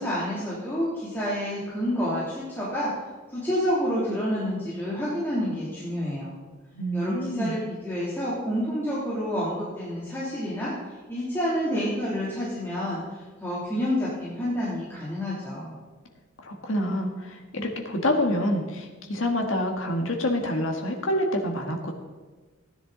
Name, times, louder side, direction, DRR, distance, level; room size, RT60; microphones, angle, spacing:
voice 1, 0.0-2.9 3.3-6.3 6.9-10.7 11.1-15.7, equal, 10° left, -9 dB, 2.9 m, -29 dB
voice 2, 6.7-7.6 16.4-21.9, left 1 dB, 85° left, 2 dB, 1.6 m, -27 dB
15.5 x 10.0 x 3.9 m, 1.3 s
head